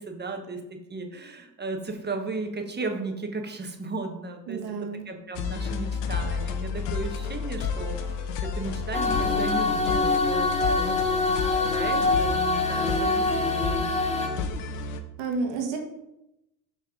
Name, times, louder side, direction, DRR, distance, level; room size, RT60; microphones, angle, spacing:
voice 1, 0.0-14.1, right 3 dB, 20° right, 4 dB, 1.3 m, -35 dB
voice 2, 4.5-5.1 15.2-15.8, right 4 dB, 60° right, 2 dB, 1.7 m, -30 dB
sound 1, 5.3-15.0, left 5 dB, 75° left, 0.9 m, -31 dB
sound 2, 8.9-14.3, left 3 dB, 15° left, 0.9 m, -25 dB
5.9 x 4.1 x 5.2 m, 0.88 s
hypercardioid pair, 75°, 48 cm